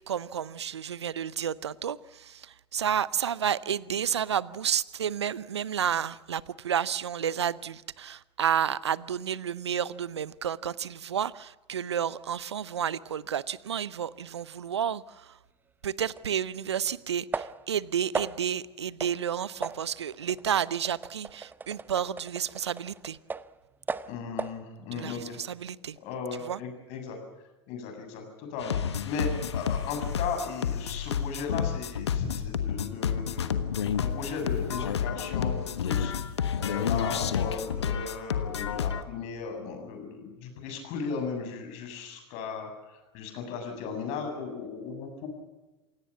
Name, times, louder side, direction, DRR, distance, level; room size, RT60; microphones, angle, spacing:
voice 1, 0.1-15.4 15.8-23.2 24.9-26.0 26.4-26.6, right 8 dB, 80° right, 0.7 m, -31 dB
sound 1, 16.2-16.3 17.3-17.8 18.1-18.6 19.0-19.2 19.6-23.6 23.9-24.6, right 4 dB, 15° right, 0.7 m, -37 dB
voice 2, 24.1-25.4 26.0-27.2 27.7-28.8 29.1-33.6 34.0-36.1 36.6-45.3, left 5 dB, 50° left, 7.5 m, -36 dB
sound 2, 28.6-39.0, left 8 dB, 75° left, 1.3 m, -30 dB
27.5 x 17.5 x 7.5 m
figure-of-eight pair, 85°, 14 cm